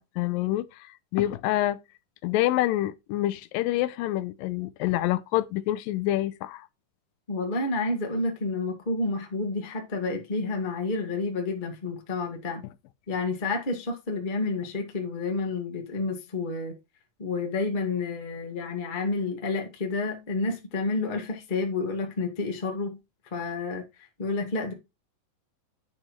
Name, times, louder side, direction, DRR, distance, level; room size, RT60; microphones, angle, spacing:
voice 1, 0.0-1.8 2.2-6.7, left 15 dB, 85° left, 2.3 m, -27 dB
voice 2, 7.3-12.6 13.1-16.7 17.2-23.0 23.3-23.8 24.2-24.7, left 3 dB, 25° left, 1.0 m, -30 dB
9.8 x 6.3 x 3.0 m
omnidirectional pair, 4.0 m